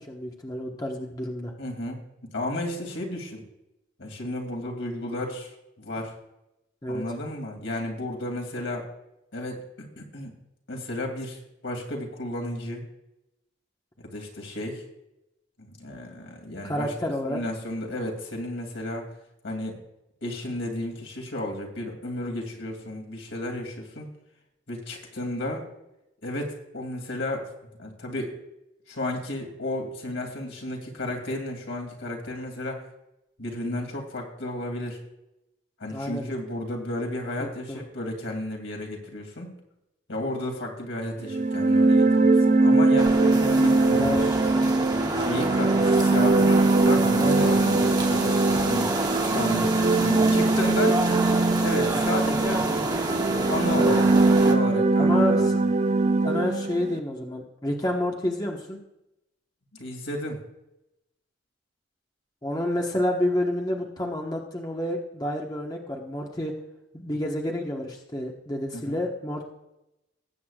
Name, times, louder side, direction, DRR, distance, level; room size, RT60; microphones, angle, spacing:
voice 1, 0.0-1.5 6.8-7.0 16.6-17.4 35.9-36.3 37.4-37.8 43.9-44.4 47.1-47.5 55.0-55.6 56.2-58.8 62.4-66.5 66.9-69.5, left 1 dB, 20° left, 0 dB, 1.2 m, -29 dB
voice 2, 1.6-2.0 2.3-3.4 4.0-6.1 6.9-8.9 9.3-10.3 10.7-12.8 14.1-14.8 15.6-16.9 17.3-19.1 19.4-19.8 20.2-24.1 24.7-25.7 26.2-27.5 27.8-28.4 28.9-32.9 33.4-35.0 35.8-39.5 40.1-44.3 45.1-48.9 49.2-51.0 51.6-52.9 53.5-55.5 59.7-60.4 68.7-69.0, left 1 dB, 80° left, 1 dB, 2.6 m, -33 dB
sound 1, 41.3-57.0, right 3 dB, 35° right, 0.4 m, -21 dB
sound 2, 43.0-54.5, right 2 dB, 20° right, 1.0 m, -29 dB
19.5 x 8.4 x 2.4 m, 0.89 s
head